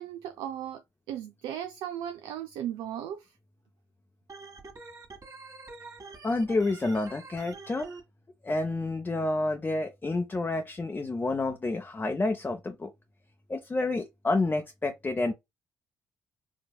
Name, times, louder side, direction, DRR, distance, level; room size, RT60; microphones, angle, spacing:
voice 1, 0.0-3.3, right 10 dB, 70° right, 0.4 m, -37 dB
Organ, 4.3-8.0, right 4 dB, 40° right, 1.5 m, -46 dB
voice 2, 6.2-7.9 8.4-12.9 13.5-15.3, left 2 dB, 25° left, 0.6 m, -29 dB
4.9 x 2.7 x 2.2 m
figure-of-eight pair, 40°, 9 cm